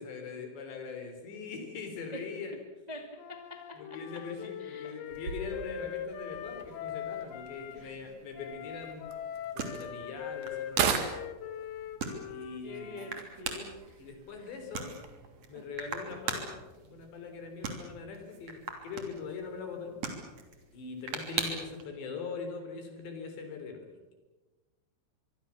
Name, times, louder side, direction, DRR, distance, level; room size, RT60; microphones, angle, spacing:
voice 1, 0.0-2.5 3.7-9.2 9.5-11.1 12.3-13.1 14.0-14.9 15.5-16.6 16.9-20.0 20.7-24.1, left 5 dB, 60° left, 6 dB, 5.8 m, -42 dB
voice 2, 2.9-4.9 7.5-8.2 12.6-14.0 14.4-14.6, left 1 dB, 80° right, 3 dB, 0.3 m, -46 dB
Wind instrument woodwind instrument, 3.2-7.8 8.4-13.2, left 9 dB, 85° left, 4.1 m, -42 dB
sound 1, 5.1-21.8, right 4 dB, 35° right, 3.6 m, -42 dB
sound 2, 6.4-15.6, right 7 dB, 60° right, 4.0 m, -39 dB
25.0 x 23.5 x 7.2 m, 1.2 s
omnidirectional pair, 5.9 m